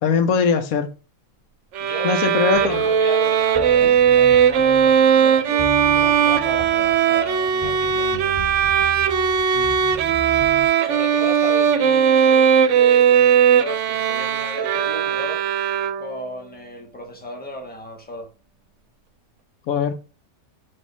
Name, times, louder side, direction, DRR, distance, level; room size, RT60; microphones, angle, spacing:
voice 1, 0.0-0.9 2.0-2.9 9.5-9.8 19.7-19.9, left 6 dB, 75° left, 1.2 m, -21 dB
voice 2, 1.8-8.4 10.8-15.4 16.0-18.3, left 1 dB, 5° left, 1.3 m, -35 dB
Bowed string instrument, 1.8-16.3, right 8 dB, 65° right, 0.8 m, -18 dB
sound 1, 2.5-10.7, left 1 dB, 30° left, 3.5 m, -37 dB
7.7 x 2.8 x 5.4 m
omnidirectional pair, 1.5 m